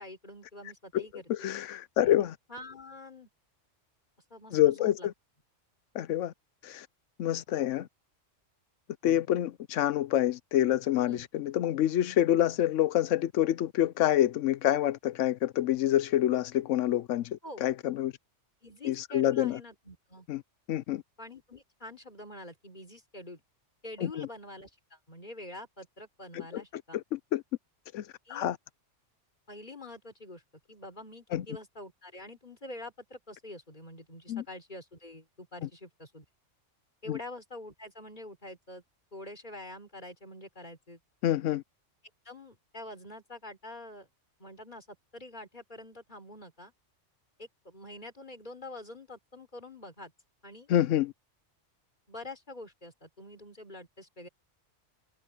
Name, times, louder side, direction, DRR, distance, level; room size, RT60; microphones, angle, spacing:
voice 1, 0.0-1.5 2.0-3.3 4.3-5.1 11.1-11.3 17.4-17.6 18.6-20.3 21.2-23.4 23.8-27.0 28.3-28.5 29.5-30.4 30.7-36.3 37.0-38.8 39.1-41.0 42.2-44.1 44.4-46.7 47.4-50.1 50.4-50.7 52.1-54.3, left 1 dB, 35° left, 3.8 m, -46 dB
voice 2, 1.3-2.3 4.5-5.1 5.9-6.3 6.6-6.9 7.2-7.9 9.0-18.1 18.8-19.6 20.3-20.4 20.7-21.0 24.0-24.3 26.3-26.6 27.1-27.4 27.9-28.0 28.3-28.6 31.3-31.4 34.3-34.4 37.1-37.2 41.2-41.6 50.7-51.1, left 12 dB, 80° left, 1.0 m, -27 dB
omnidirectional pair, 1.3 m